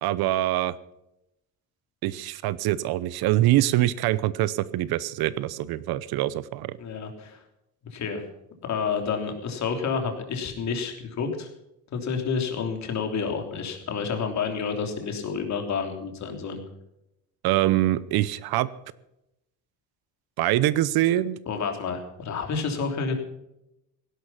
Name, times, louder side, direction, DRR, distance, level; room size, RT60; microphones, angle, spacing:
voice 1, 0.0-0.7 2.0-6.8 17.4-18.7 20.4-21.4, right 15 dB, 85° right, 18 dB, 0.9 m, -24 dB
voice 2, 6.8-7.4 7.9-8.2 8.6-11.5 11.9-16.6 21.5-23.1, left 5 dB, 50° left, 5 dB, 3.3 m, -29 dB
17.0 x 11.5 x 5.8 m, 0.86 s
cardioid pair, 150°, 36 cm